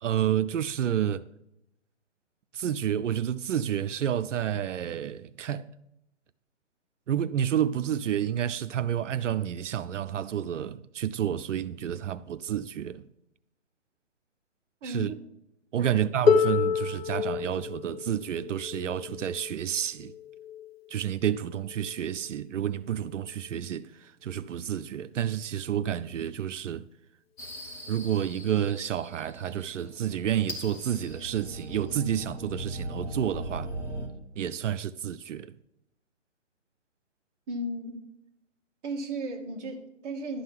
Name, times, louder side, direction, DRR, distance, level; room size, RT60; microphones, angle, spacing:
voice 1, 0.0-1.2 2.5-5.7 7.1-13.1 14.8-15.1 15.7-20.1 20.9-26.9 27.9-33.7 34.4-35.6, right 10 dB, 85° right, 0.5 m, -30 dB
voice 2, 14.8-15.2 15.8-16.0 37.5-38.0 38.8-40.4, right 1 dB, 15° right, 1.2 m, -35 dB
Harp, 16.3-22.1 23.1-23.2, left 6 dB, 55° left, 1.1 m, -29 dB
sound 1, 27.4-34.1, right 1 dB, 20° left, 1.3 m, -39 dB
11.5 x 3.9 x 7.6 m
hypercardioid pair, 150°, 36 cm